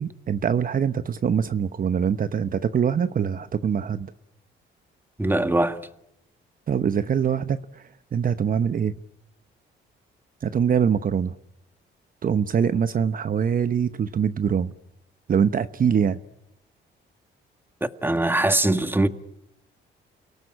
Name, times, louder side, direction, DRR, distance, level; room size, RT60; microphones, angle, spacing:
voice 1, 0.0-4.1 6.7-7.8 8.1-8.9 10.4-11.3 12.2-14.7 15.3-16.2, right 7 dB, 45° right, 1.0 m, -23 dB
voice 2, 5.2-5.8 18.0-19.1, right 2 dB, 10° right, 1.8 m, -21 dB
29.5 x 18.0 x 9.9 m
cardioid pair, 90°, 20 cm